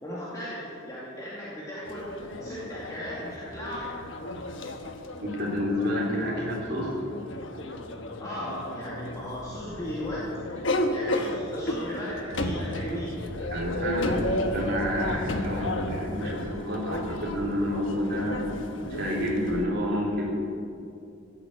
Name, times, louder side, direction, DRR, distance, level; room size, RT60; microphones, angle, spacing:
voice 1, 0.0-4.0 8.2-10.6 10.9-13.1, equal, 15° left, -8 dB, 2.4 m, -36 dB
sound 1, 1.9-19.7, left 1 dB, 65° left, 1.2 m, -33 dB
voice 2, 5.2-6.9 13.5-14.3 14.5-18.4 18.9-20.3, equal, 50° right, -4 dB, 3.7 m, -29 dB
16.0 x 8.6 x 8.2 m, 2.6 s
head